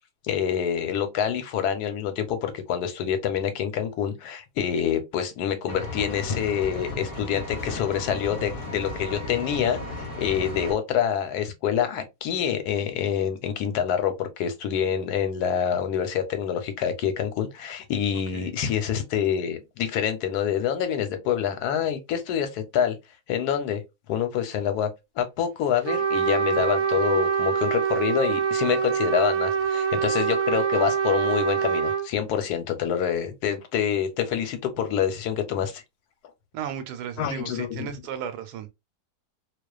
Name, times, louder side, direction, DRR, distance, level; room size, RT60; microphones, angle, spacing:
voice 1, 0.2-23.0 23.3-23.8 24.1-24.9 25.2-35.8 37.2-37.9, left 8 dB, 85° left, 1.2 m, -26 dB
Engine, 5.7-10.7, left 2 dB, 40° left, 0.9 m, -35 dB
Trumpet, 25.9-32.1, right 7 dB, 70° right, 0.6 m, -24 dB
voice 2, 36.5-38.7, right 8 dB, 90° right, 1.1 m, -35 dB
2.4 x 2.3 x 2.2 m
omnidirectional pair, 1.6 m